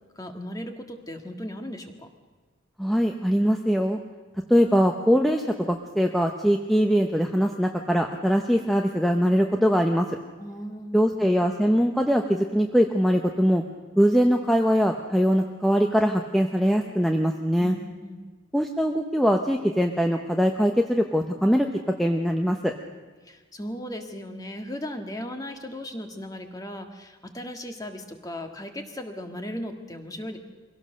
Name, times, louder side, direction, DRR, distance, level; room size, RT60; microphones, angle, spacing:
voice 1, 0.1-2.1 10.4-11.1 17.6-18.3 23.2-30.4, left 1 dB, 20° left, 5 dB, 1.7 m, -37 dB
voice 2, 2.8-4.0 4.5-10.1 10.9-13.6 14.0-17.8 18.5-21.7 22.0-22.7, equal, ahead, 3 dB, 0.8 m, -22 dB
23.5 x 17.0 x 6.6 m, 1.4 s
head